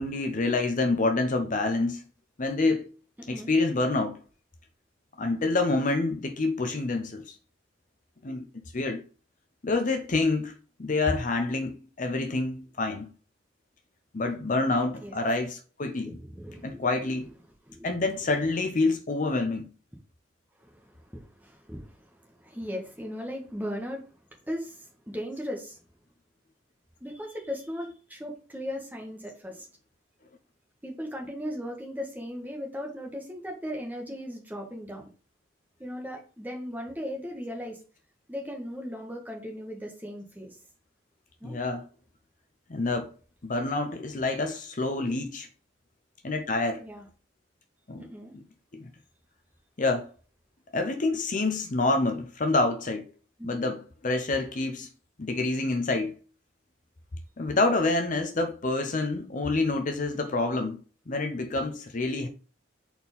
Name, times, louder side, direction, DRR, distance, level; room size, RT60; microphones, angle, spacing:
voice 1, 0.0-2.0 2.4-2.9 3.3-4.2 5.2-7.3 8.2-8.5 8.7-9.0 9.6-10.5 10.8-13.1 14.1-16.2 16.6-17.3 17.8-19.7 41.4-41.9 42.7-43.1 43.4-45.5 46.2-46.8 47.9-48.1 48.3-48.4 48.7-48.9 49.8-50.1 50.7-53.1 53.4-54.9 55.2-56.1 57.4-60.8 61.1-62.3, left 3 dB, 40° left, 0.7 m, -27 dB
voice 2, 3.2-3.5 15.0-15.1 16.1-16.9 17.7-17.9 20.6-24.0 24.5-25.8 27.0-29.7 30.8-35.1 35.8-37.8 38.3-40.5 41.4-41.5 46.8-47.0 48.0-48.3 53.4-53.6, equal, 10° right, 1.4 m, -37 dB
4.3 x 4.3 x 5.4 m
head